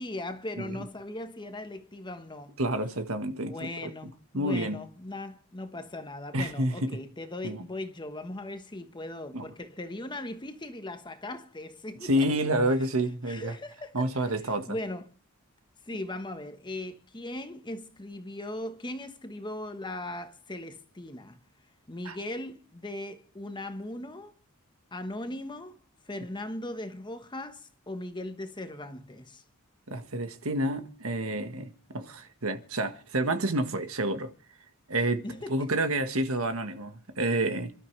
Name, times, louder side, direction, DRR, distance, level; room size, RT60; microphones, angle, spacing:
voice 1, 0.0-2.6 3.4-12.2 13.2-15.1 15.8-21.4 21.9-24.3 24.9-25.8 26.1-29.4 35.2-35.7, left 1 dB, 20° left, 1.3 m, -39 dB
voice 2, 2.6-3.9 4.3-4.8 6.3-6.9 7.4-7.6 9.3-9.4 12.0-13.5 13.9-14.8 22.0-22.2 29.9-34.3 34.9-35.2 35.5-37.7, right 1 dB, 65° right, 1.5 m, -29 dB
27.5 x 12.5 x 3.3 m
head